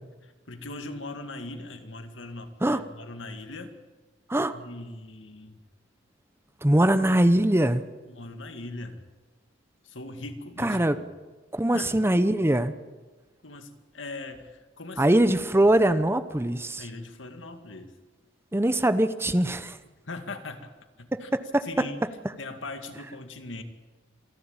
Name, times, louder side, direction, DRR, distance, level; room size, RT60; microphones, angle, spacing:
voice 1, 0.2-3.7 4.5-5.6 8.1-9.0 9.8-10.9 11.7-12.0 13.4-15.2 16.8-18.0 20.1-20.7 21.0-21.3 21.6-22.0 22.4-23.6, left 2 dB, 90° left, 7 dB, 2.1 m, -40 dB
voice 2, 6.6-7.8 10.6-11.0 11.5-12.7 15.0-16.8 18.5-19.8 21.1-21.8, right 1 dB, 15° right, 12 dB, 0.8 m, -22 dB
27.5 x 11.5 x 8.9 m, 1.3 s
head